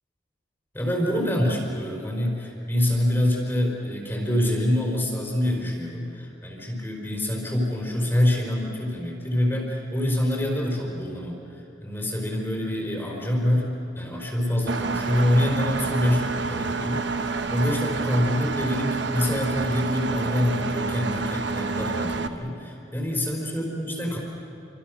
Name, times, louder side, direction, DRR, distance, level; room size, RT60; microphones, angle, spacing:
voice 1, 0.7-24.2, left 1 dB, 10° left, -1 dB, 4.3 m, -26 dB
Engine, 14.7-22.3, right 3 dB, 75° right, 1.1 m, -28 dB
30.0 x 25.5 x 6.3 m, 2.8 s
head